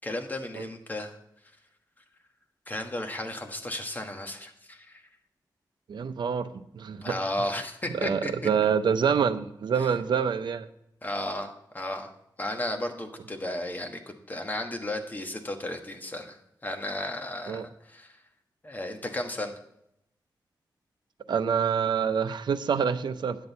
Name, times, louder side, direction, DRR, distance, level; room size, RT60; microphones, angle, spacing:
voice 1, 0.0-1.1 2.7-5.0 7.0-8.3 11.0-12.1 12.4-18.2 18.6-19.5, left 1 dB, 25° left, 4 dB, 1.3 m, -34 dB
voice 2, 5.9-7.2 7.9-10.7 17.5-17.6 21.3-23.4, right 7 dB, 75° right, 10 dB, 0.6 m, -26 dB
9.7 x 7.8 x 4.1 m, 0.78 s
wide cardioid pair, 105°, 8 cm